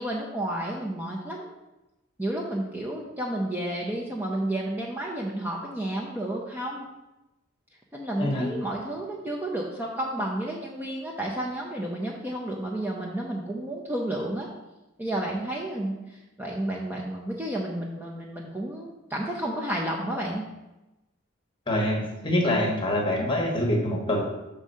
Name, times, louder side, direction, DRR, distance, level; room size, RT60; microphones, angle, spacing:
voice 1, 0.0-1.5 2.2-6.9 7.9-14.5 15.0-20.4, right 1 dB, 10° right, -3 dB, 0.6 m, -31 dB
voice 2, 8.2-8.6 21.7-24.3, left 1 dB, 25° left, 0 dB, 1.1 m, -25 dB
6.5 x 3.7 x 5.4 m, 1.0 s
head